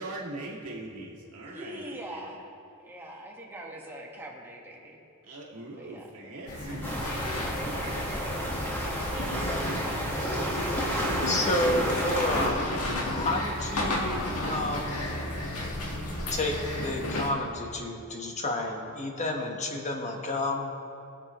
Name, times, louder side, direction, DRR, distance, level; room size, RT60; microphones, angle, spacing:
voice 1, 0.0-2.3 5.2-7.0 7.4-8.2 8.7-10.9, right 2 dB, 70° right, -4 dB, 2.0 m, -42 dB
voice 2, 1.5-2.4 2.8-5.0 5.8-6.3 7.4-8.2, equal, 10° right, -2 dB, 1.7 m, -43 dB
sound 1, 6.5-17.3, left 1 dB, 70° left, 1.8 m, -33 dB
sound 2, 6.8-12.5, equal, 10° left, 1.6 m, -31 dB
voice 3, 11.3-15.2 16.3-20.7, left 1 dB, 35° left, 1 dB, 1.3 m, -31 dB
21.5 x 7.4 x 3.1 m, 2.6 s
head